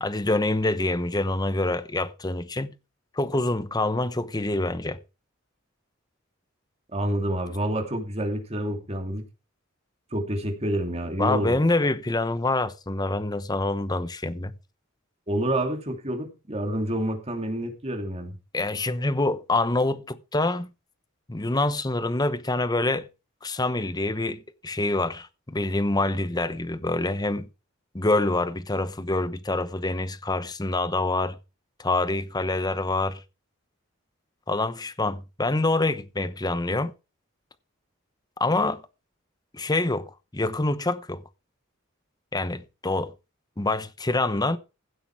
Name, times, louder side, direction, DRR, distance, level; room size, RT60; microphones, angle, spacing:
voice 1, 0.0-2.7 3.1-5.0 11.2-14.5 18.5-20.7 21.3-23.1 23.4-27.5 27.9-31.4 31.8-33.2 34.5-36.9 38.4-38.8 39.5-41.2 42.3-43.1 43.6-44.6, left 2 dB, 20° left, 0.9 m, -26 dB
voice 2, 6.9-9.2 10.1-11.6 15.3-18.4, right 1 dB, 30° right, 2.7 m, -28 dB
16.0 x 7.9 x 4.7 m
head